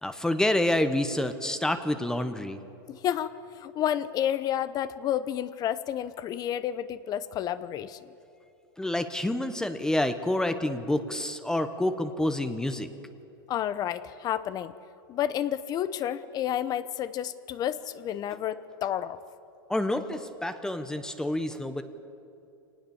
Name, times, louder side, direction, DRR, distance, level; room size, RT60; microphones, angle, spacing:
voice 1, 0.0-2.6 8.8-12.9 19.7-21.8, left 1 dB, 5° left, 9 dB, 1.0 m, -28 dB
voice 2, 2.9-8.0 13.5-14.7 15.1-19.2, left 10 dB, 35° left, 14 dB, 0.8 m, -30 dB
24.5 x 19.0 x 7.1 m, 2.7 s
supercardioid pair, 130°, 12 cm